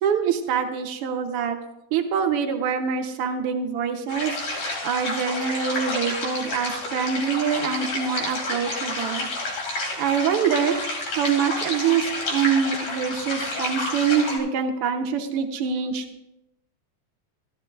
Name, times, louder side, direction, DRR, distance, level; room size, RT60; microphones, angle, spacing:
voice 1, 0.0-1.6 1.9-4.4 4.8-9.3 10.0-10.8 11.2-16.0, right 7 dB, 80° right, 4 dB, 1.3 m, -25 dB
sound 1, 4.1-14.4, left 2 dB, 90° left, 3.7 m, -30 dB
14.5 x 13.0 x 2.3 m, 0.88 s
omnidirectional pair, 3.4 m